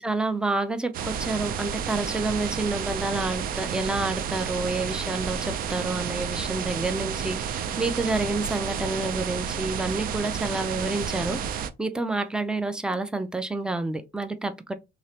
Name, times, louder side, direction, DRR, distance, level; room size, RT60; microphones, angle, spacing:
voice 1, 0.0-14.7, right 2 dB, 5° right, 0.4 m, -29 dB
sound 1, 0.9-11.7, right 7 dB, 60° right, 0.5 m, -31 dB
3.1 x 2.8 x 2.8 m
cardioid pair, 110°, 17 cm